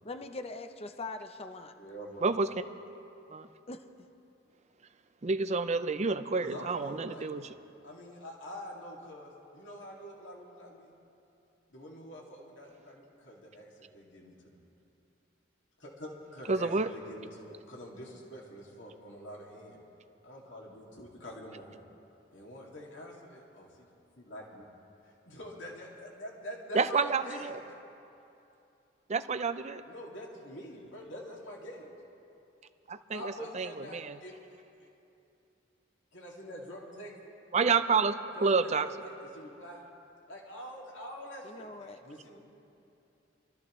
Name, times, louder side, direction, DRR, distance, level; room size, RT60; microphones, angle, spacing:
voice 1, 0.0-1.7 3.7-3.8 16.7-16.9 30.8-31.1 41.4-42.0, left 3 dB, 30° left, 7 dB, 0.7 m, -42 dB
voice 2, 1.7-2.3 6.4-7.4 7.8-10.9 11.7-14.6 15.8-19.8 20.2-21.8 22.3-23.9 24.2-24.7 25.2-27.6 29.8-31.9 33.1-34.3 36.1-37.1 38.4-39.8 40.3-42.4, equal, 75° left, -3 dB, 2.5 m, -46 dB
voice 3, 5.2-7.5 16.5-16.9 26.7-27.6 29.1-29.8 32.9-34.2 37.5-38.9, right 4 dB, 35° right, 10 dB, 0.5 m, -29 dB
25.5 x 13.5 x 3.2 m, 2.8 s
head